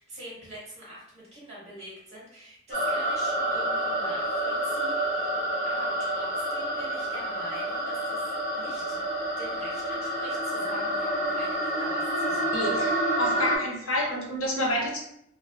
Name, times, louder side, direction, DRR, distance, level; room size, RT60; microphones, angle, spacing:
voice 1, 0.0-5.4 5.6-8.9 9.4-12.8, right 1 dB, 35° right, -7 dB, 1.2 m, -44 dB
sound 1, 2.7-13.6, right 1 dB, 40° left, 0.6 m, -28 dB
voice 2, 12.5-15.0, left 1 dB, 85° left, -1 dB, 0.7 m, -29 dB
2.6 x 2.4 x 2.3 m, 0.75 s
head